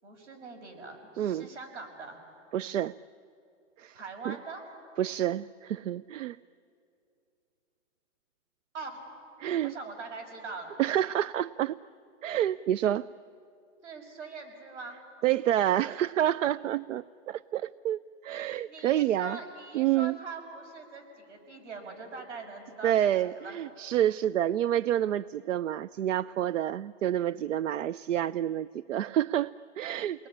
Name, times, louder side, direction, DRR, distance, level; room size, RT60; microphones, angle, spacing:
voice 1, 0.0-2.2 3.9-4.6 8.7-9.1 9.6-10.8 13.8-15.0 18.6-23.0 23.2-23.6 30.0-30.3, right 3 dB, 70° right, 4 dB, 6.3 m, -42 dB
voice 2, 1.2-1.5 2.5-2.9 3.8-4.0 4.2-4.4 5.0-6.4 9.4-9.7 10.8-11.8 12.2-13.1 15.2-19.4 19.7-20.2 22.8-30.3, right 11 dB, 90° right, 19 dB, 0.6 m, -28 dB
29.0 x 20.5 x 10.0 m, 2.6 s
hypercardioid pair, 160°, 37 cm